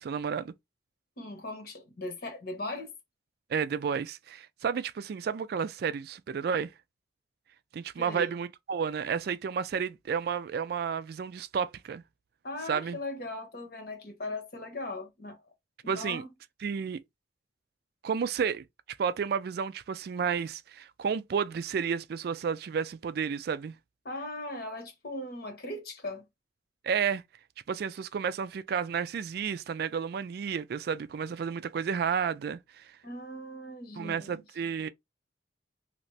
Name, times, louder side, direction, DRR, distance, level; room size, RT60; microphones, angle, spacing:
voice 1, 0.0-0.5 3.5-6.7 7.7-12.0 12.7-13.0 15.9-16.2 16.6-17.0 18.0-18.6 19.0-23.7 26.8-27.2 27.7-32.8 34.0-34.9, right 6 dB, 55° right, 0.3 m, -31 dB
voice 2, 1.2-2.9 8.0-8.3 12.4-15.4 15.8-16.3 24.0-26.2 33.0-34.4, left 2 dB, 55° left, 1.0 m, -39 dB
2.9 x 2.6 x 3.2 m
head